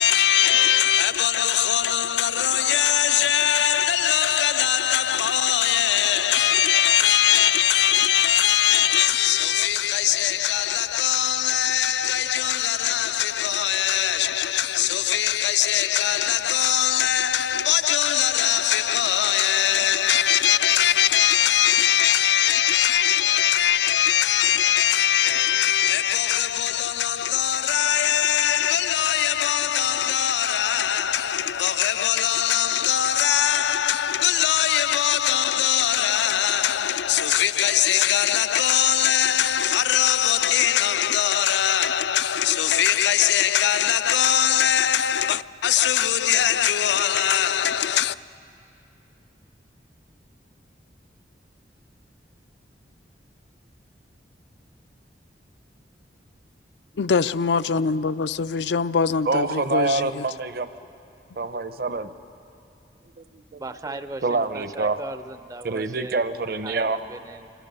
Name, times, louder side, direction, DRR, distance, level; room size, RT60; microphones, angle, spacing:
voice 1, 0.0-48.2 57.0-60.2, left 10 dB, 75° left, 0.5 m, -21 dB
voice 2, 59.3-60.7 61.4-62.1 63.2-63.6 63.9-65.0 65.6-67.0, right 3 dB, 55° right, 0.7 m, -26 dB
voice 3, 63.5-66.2 66.6-67.5, right 2 dB, 20° right, 0.4 m, -38 dB
27.5 x 24.5 x 5.5 m
head